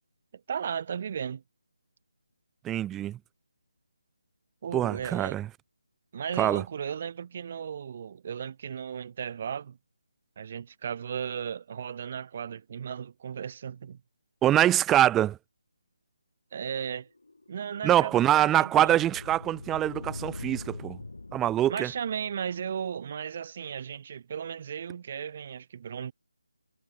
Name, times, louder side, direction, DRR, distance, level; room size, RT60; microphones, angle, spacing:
voice 1, 0.5-1.4 4.6-5.4 6.1-9.8 10.4-14.0 16.5-17.1 17.5-19.0 21.7-26.1, right 7 dB, 35° right, 3.5 m, -35 dB
voice 2, 2.6-3.2 4.7-5.5 6.4-6.6 14.4-15.4 17.8-21.0 21.3-21.9, right 12 dB, 10° right, 0.3 m, -24 dB
sound 1, 17.0-22.6, left 2 dB, 70° left, 4.6 m, -43 dB
figure-of-eight pair, 155°, 0 cm